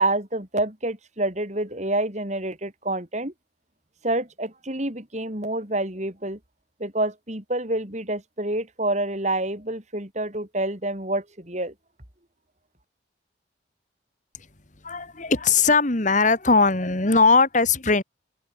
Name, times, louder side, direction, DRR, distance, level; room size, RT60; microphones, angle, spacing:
voice 1, 0.0-3.3 4.0-6.4 6.8-11.7, right 2 dB, 35° right, 3.7 m, -27 dB
voice 2, 14.8-18.0, left 4 dB, 40° left, 1.8 m, -19 dB
open air
head